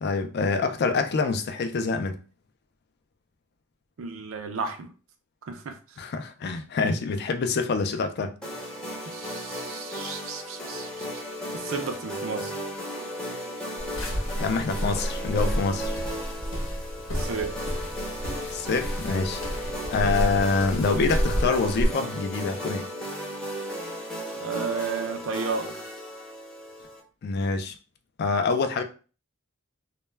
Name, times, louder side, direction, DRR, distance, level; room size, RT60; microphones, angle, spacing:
voice 1, 0.0-2.2 6.0-8.3 14.4-16.0 18.5-22.9 27.2-27.7 28.2-28.8, left 4 dB, 50° left, 0.4 m, -26 dB
voice 2, 4.0-4.9 5.4-6.0 9.1-11.2 11.5-12.5 17.1-17.6 24.3-25.8, right 5 dB, 75° right, 0.4 m, -33 dB
sound 1, 8.4-27.0, equal, 5° left, 0.6 m, -35 dB
sound 2, 13.8-21.8, equal, 75° left, 0.8 m, -30 dB
2.2 x 2.1 x 3.2 m
head